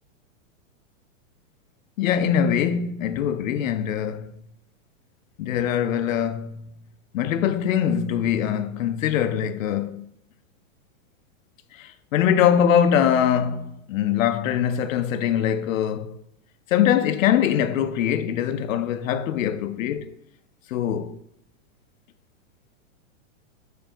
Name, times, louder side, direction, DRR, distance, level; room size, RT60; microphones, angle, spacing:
voice 1, 2.0-4.3 5.4-6.7 7.1-10.1 11.7-16.2 16.7-20.0 20.7-21.2, left 9 dB, 80° left, 0.5 m, -23 dB
3.6 x 3.2 x 4.3 m
supercardioid pair, 160°, 40 cm